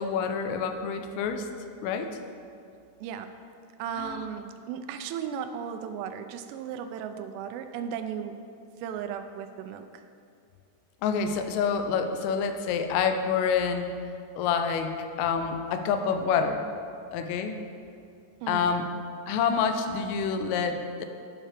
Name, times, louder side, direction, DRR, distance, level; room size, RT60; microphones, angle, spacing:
voice 1, 0.0-1.5 1.8-2.1 4.0-4.3 11.0-13.9 14.4-14.9 15.2-16.6 17.1-17.6 18.5-18.9 19.3-21.1, left 6 dB, 85° left, 7 dB, 3.3 m, -27 dB
voice 2, 3.0-3.3 3.8-8.4 8.8-10.0 18.4-18.7, right 8 dB, 85° right, 7 dB, 3.1 m, -36 dB
11.5 x 5.4 x 5.0 m, 2.5 s
omnidirectional pair, 5.7 m